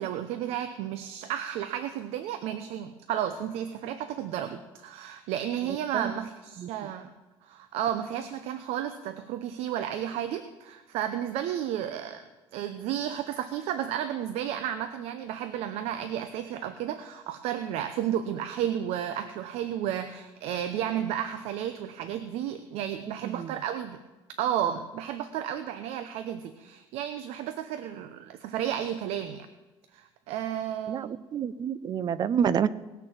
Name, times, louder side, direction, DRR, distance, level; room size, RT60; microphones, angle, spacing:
voice 1, 0.0-7.1 7.4-12.2 12.5-24.0 24.4-29.5 29.9-31.2, right 10 dB, 75° right, 9 dB, 0.8 m, -32 dB
voice 2, 5.6-6.1 6.6-6.7 23.0-23.5 30.9-32.7, right 8 dB, 40° right, 17 dB, 0.5 m, -29 dB
19.0 x 6.7 x 7.4 m, 1.2 s
cardioid pair, 125°, 11 cm